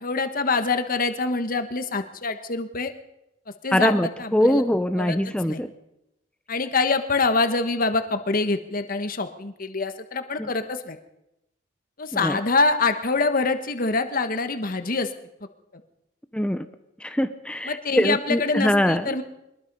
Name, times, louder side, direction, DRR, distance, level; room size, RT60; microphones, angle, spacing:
voice 1, 0.0-2.9 3.6-4.6 5.0-5.2 5.5-5.6 6.5-11.0 12.0-15.1 17.6-19.2, left 3 dB, 50° left, 8 dB, 1.3 m, -25 dB
voice 2, 3.7-5.7 10.4-10.5 12.2-12.4 16.3-16.6 17.0-19.1, equal, 5° left, 9 dB, 0.6 m, -23 dB
23.0 x 21.0 x 5.4 m, 0.88 s
head